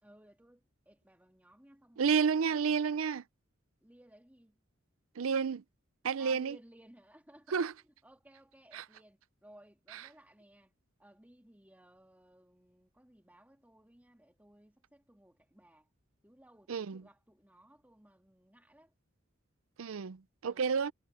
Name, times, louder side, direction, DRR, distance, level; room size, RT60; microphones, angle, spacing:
voice 1, 0.0-2.6 3.8-4.6 6.2-10.7 11.0-15.9 16.2-18.9 20.4-20.9, right 1 dB, 10° right, 2.2 m, -60 dB
voice 2, 2.0-3.2 5.2-5.6 6.0-6.6 7.5-7.7 8.7-8.8 16.7-17.0 19.8-20.9, right 6 dB, 85° right, 0.5 m, -30 dB
head